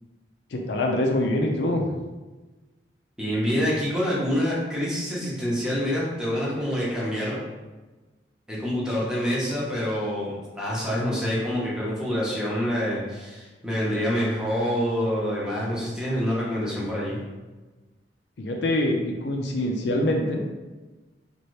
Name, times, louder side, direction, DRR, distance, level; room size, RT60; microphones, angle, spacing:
voice 1, 0.5-1.8 18.4-20.4, left 1 dB, 70° left, 1 dB, 0.4 m, -24 dB
voice 2, 3.2-7.4 8.5-17.2, equal, 5° right, -7 dB, 0.8 m, -26 dB
2.7 x 2.6 x 3.1 m, 1.2 s
head